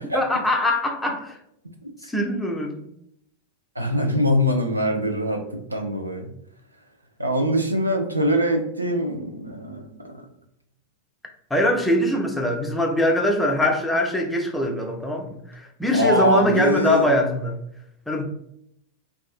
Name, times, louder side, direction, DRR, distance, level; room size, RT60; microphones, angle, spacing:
voice 1, 0.1-1.4 2.0-2.8 11.5-17.6 18.1-18.2, left 1 dB, 5° left, 2 dB, 0.4 m, -22 dB
voice 2, 3.8-5.4 5.7-6.3 7.2-10.2 15.9-17.1, equal, 85° right, 4 dB, 0.4 m, -23 dB
2.6 x 2.3 x 2.4 m, 0.76 s
figure-of-eight pair, 90°, 0 cm